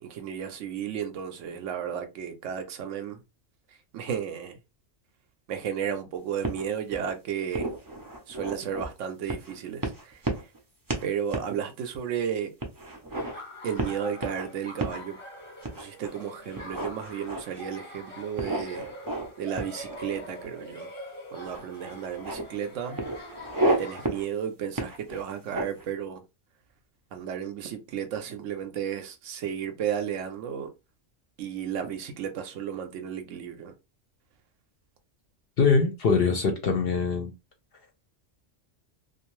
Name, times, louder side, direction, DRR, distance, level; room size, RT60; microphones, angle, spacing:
voice 1, 0.0-3.2 3.7-4.6 5.5-7.7 8.3-10.5 11.0-12.5 13.6-15.2 15.7-18.9 19.4-20.9 21.3-23.0 23.8-26.2 27.1-30.7 31.4-33.7, right 8 dB, 90° right, 0.9 m, -33 dB
sound 1, 6.4-7.1 7.5-8.9 9.3-9.5 9.8-10.6 10.9-11.1 11.3-11.5 11.9-12.0 12.6-13.3 13.8-14.4 14.8-15.0 15.6-16.1 16.5-17.7 18.4-19.3 19.5-20.4 21.4-21.6 21.9-22.4 23.0-23.8 24.0-24.3 24.7-25.8, right 2 dB, 30° right, 0.4 m, -31 dB
Laughter, 13.1-24.1, left 1 dB, 25° left, 1.0 m, -43 dB
voice 2, 35.6-37.3, left 5 dB, 60° left, 0.7 m, -23 dB
2.6 x 2.3 x 3.0 m
omnidirectional pair, 1.2 m